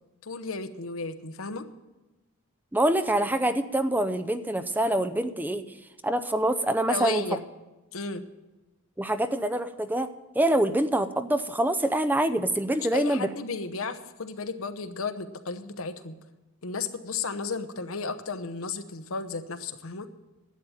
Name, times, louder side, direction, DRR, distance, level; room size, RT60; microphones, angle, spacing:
voice 1, 0.2-1.7 6.9-7.4 7.9-8.2 12.9-16.2 16.6-20.1, left 4 dB, 85° left, 9 dB, 1.0 m, -33 dB
voice 2, 2.7-5.6 6.0-7.3 9.0-13.3, right 1 dB, 10° right, 11 dB, 0.5 m, -25 dB
11.5 x 8.6 x 9.0 m, 1.1 s
head